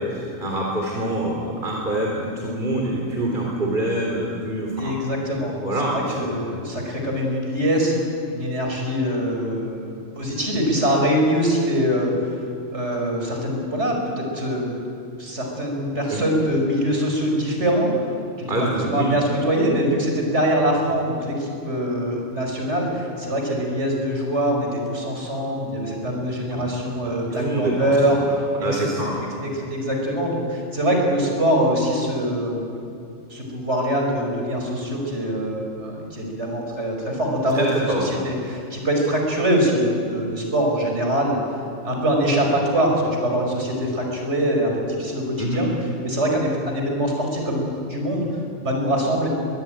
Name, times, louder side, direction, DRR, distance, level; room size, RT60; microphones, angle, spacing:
voice 1, 0.0-5.0 5.6-6.8 16.1-16.3 18.5-19.2 26.5-26.7 27.0-29.4 37.1-37.2 37.5-38.2 45.4-45.6, right 1 dB, 40° right, -1 dB, 3.6 m, -26 dB
voice 2, 4.8-5.5 5.9-7.9 8.3-12.4 12.7-14.8 15.2-17.9 18.8-28.2 28.6-28.8 29.4-32.8 33.3-41.4 41.8-45.7 46.0-48.3 48.6-49.3, equal, 60° right, 1 dB, 5.5 m, -23 dB
22.5 x 22.0 x 9.2 m, 2.5 s
omnidirectional pair, 1.3 m